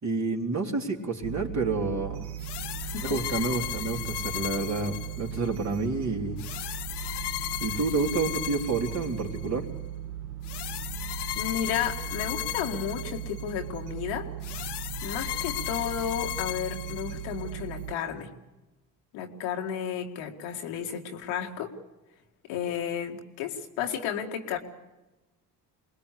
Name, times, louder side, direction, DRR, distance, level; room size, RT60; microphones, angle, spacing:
voice 1, 0.0-2.5 3.0-6.4 7.6-9.7, right 3 dB, 35° right, 1 dB, 3.8 m, -29 dB
sound 1, 1.2-17.9, right 11 dB, 90° right, 1.5 m, -38 dB
sound 2, 2.4-5.6 6.4-9.5 10.4-13.6 14.4-17.5, left 16 dB, 60° left, 0.7 m, -36 dB
voice 2, 2.8-3.5 11.4-14.3 15.0-18.3 19.1-21.7 22.5-24.6, left 8 dB, 85° left, 3 dB, 2.1 m, -33 dB
23.0 x 20.0 x 8.3 m, 1.1 s
hypercardioid pair, 60°, 47 cm